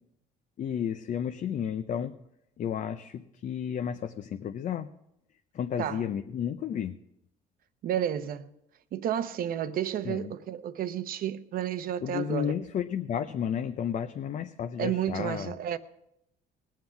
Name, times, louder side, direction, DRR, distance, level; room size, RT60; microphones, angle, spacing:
voice 1, 0.6-2.1 2.6-4.9 5.5-7.0 10.0-10.3 12.0-15.5, left 8 dB, 50° left, 0.7 m, -32 dB
voice 2, 7.8-8.5 8.9-12.6 14.8-15.8, right 10 dB, 60° right, 0.8 m, -31 dB
20.0 x 7.6 x 5.8 m
cardioid pair, 110°, 17 cm